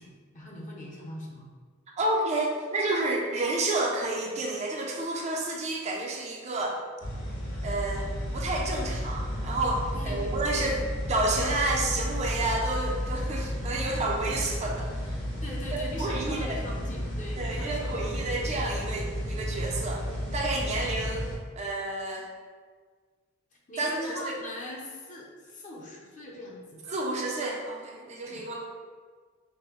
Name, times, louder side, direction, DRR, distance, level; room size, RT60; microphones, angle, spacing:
voice 1, 0.0-1.5 9.9-10.9 15.4-18.8 20.6-20.9 23.7-26.9 28.3-28.4, left 1 dB, 40° left, -2 dB, 0.7 m, -41 dB
voice 2, 2.0-6.8 7.6-10.8 11.1-15.2 15.7-16.6 17.4-20.0 20.3-21.2 21.6-22.3 23.8-24.3 26.9-28.7, right 2 dB, 35° right, -1 dB, 0.5 m, -30 dB
sound 1, 7.0-21.3, equal, 85° left, 1.3 m, -33 dB
5.2 x 2.1 x 3.0 m, 1.5 s
head